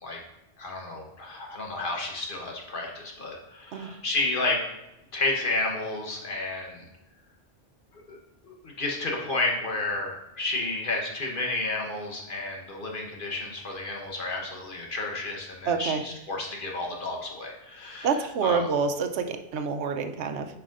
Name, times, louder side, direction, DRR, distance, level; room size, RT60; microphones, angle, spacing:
voice 1, 0.6-4.6 5.1-6.8 8.1-8.2 8.6-18.1 18.4-18.6, left 2 dB, 50° left, 0 dB, 1.2 m, -31 dB
voice 2, 15.7-16.0 18.0-20.5, right 5 dB, 80° right, 8 dB, 0.9 m, -27 dB
9.1 x 4.7 x 2.5 m, 0.94 s
omnidirectional pair, 1.2 m